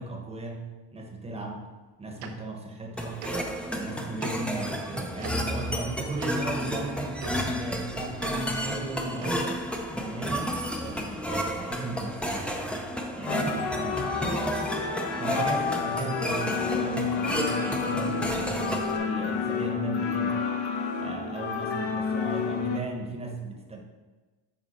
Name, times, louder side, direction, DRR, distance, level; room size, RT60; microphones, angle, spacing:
voice 1, 0.0-1.7 2.0-3.2 3.7-9.6 9.9-12.5 13.1-14.5 15.2-20.4 21.0-23.8, right 2 dB, 15° right, 1 dB, 1.0 m, -36 dB
Tick-tock, 2.2-2.3 3.2-3.3 4.2-4.3 5.2-5.3 6.2-6.3 7.2-7.3 8.2-8.3 9.2-9.4, right 8 dB, 90° right, 1.0 m, -39 dB
sound 1, 3.0-19.0, equal, 5° left, 0.5 m, -31 dB
sound 2, 13.3-22.8, left 5 dB, 70° left, 1.1 m, -30 dB
8.2 x 5.2 x 4.2 m, 1.3 s
cardioid pair, 150°, 47 cm